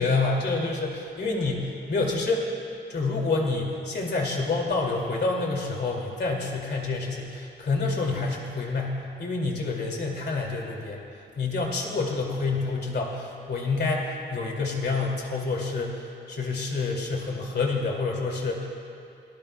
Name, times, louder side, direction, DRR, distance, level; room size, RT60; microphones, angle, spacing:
voice 1, 0.0-2.5 2.9-11.0 11.4-16.0 16.3-18.7, left 3 dB, 65° left, 0 dB, 2.3 m, -28 dB
27.0 x 19.0 x 2.2 m, 2.9 s
wide cardioid pair, 160°, 18 cm